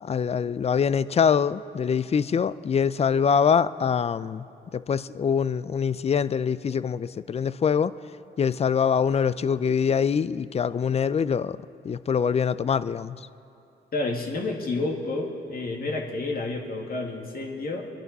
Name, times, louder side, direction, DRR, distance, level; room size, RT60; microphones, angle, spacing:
voice 1, 0.0-4.5 4.7-7.9 8.4-11.6 11.8-13.2, left 7 dB, 30° left, 17 dB, 0.4 m, -24 dB
voice 2, 13.9-17.9, left 2 dB, 50° left, 1 dB, 2.1 m, -30 dB
25.0 x 11.5 x 4.1 m, 2.6 s
cardioid pair, 90°, 20 cm